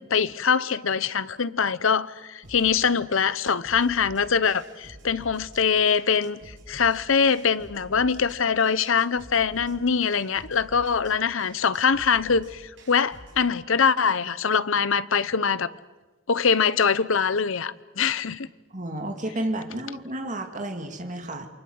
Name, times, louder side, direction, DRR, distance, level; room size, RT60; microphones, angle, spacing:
voice 1, 0.0-6.4 6.7-15.7 16.3-18.5, left 6 dB, 70° left, 0.9 m, -23 dB
sound 1, 2.4-13.4, right 1 dB, 60° right, 5.4 m, -48 dB
voice 2, 18.7-21.5, right 1 dB, 35° right, 2.3 m, -31 dB
28.5 x 24.0 x 7.9 m
head